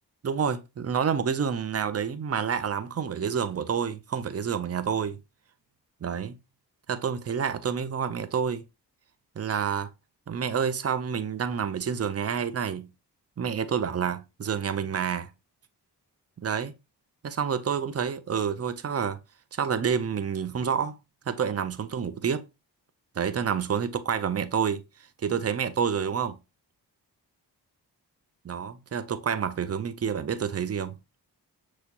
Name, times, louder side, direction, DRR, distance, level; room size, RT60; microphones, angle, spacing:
voice 1, 0.2-5.2 6.0-6.4 6.9-8.6 9.4-9.9 10.3-12.9 13.4-15.3 16.4-16.7 17.2-19.2 19.5-21.0 21.3-22.4 23.2-24.8 25.2-26.4 28.5-31.0, right 7 dB, 35° right, 0.6 m, -28 dB
6.0 x 3.1 x 2.9 m
cardioid pair, 65°, 41 cm